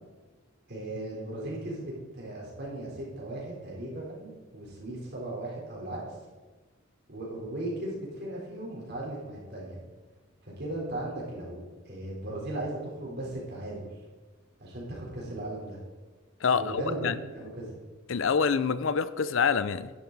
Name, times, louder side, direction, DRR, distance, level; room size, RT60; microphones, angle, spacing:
voice 1, 0.7-6.2 7.1-9.8 10.4-14.0 14.6-15.8 16.5-17.7, right 1 dB, 50° right, -4 dB, 3.9 m, -37 dB
voice 2, 16.4-17.2 18.1-19.9, left 6 dB, 70° left, 15 dB, 0.5 m, -26 dB
11.5 x 10.5 x 4.0 m, 1.3 s
head